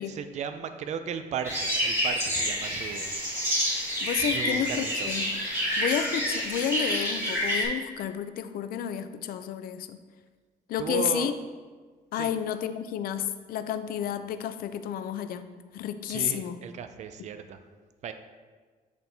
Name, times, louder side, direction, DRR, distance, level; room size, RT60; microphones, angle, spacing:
voice 1, 0.0-3.1 4.2-5.1 10.8-11.3 12.2-12.3 16.1-17.6 18.0-18.1, right 7 dB, 50° right, 9 dB, 0.4 m, -35 dB
sound 1, 1.4-7.7, equal, 15° right, 1.6 m, -28 dB
voice 2, 4.0-5.4 5.8-10.0 10.7-11.3 12.1-15.5 15.7-16.6 17.2-17.3, left 9 dB, 70° left, 10 dB, 0.4 m, -31 dB
8.3 x 4.3 x 2.7 m, 1.5 s
cardioid pair, 120°, 16 cm